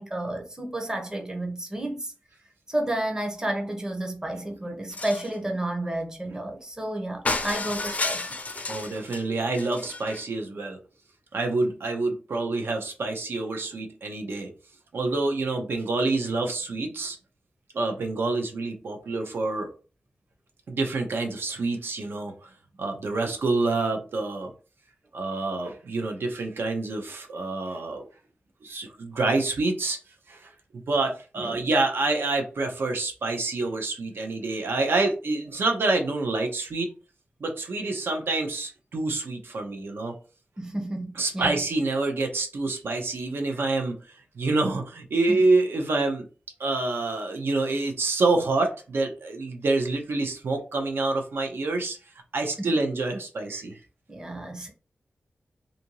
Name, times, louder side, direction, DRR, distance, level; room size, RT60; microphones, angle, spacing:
voice 1, 0.0-2.1 2.7-8.4 31.4-31.6 40.6-41.6 43.5-43.6 45.1-45.4 52.6-52.7 53.5-53.6 54.1-54.7, right 1 dB, 15° right, 0.7 m, -31 dB
sound 1, 4.9-5.3 7.2-9.2 9.5-10.2, left 3 dB, 40° left, 0.4 m, -31 dB
voice 2, 8.6-10.8 11.3-14.5 14.9-17.2 17.7-19.7 20.7-22.5 22.8-24.5 25.1-28.0 28.6-30.0 30.3-30.5 30.9-36.9 37.4-40.1 41.1-44.0 44.3-46.3 46.6-52.0 52.3-53.7, right 3 dB, 80° right, 0.7 m, -27 dB
2.7 x 2.5 x 2.9 m
wide cardioid pair, 135°, 4 cm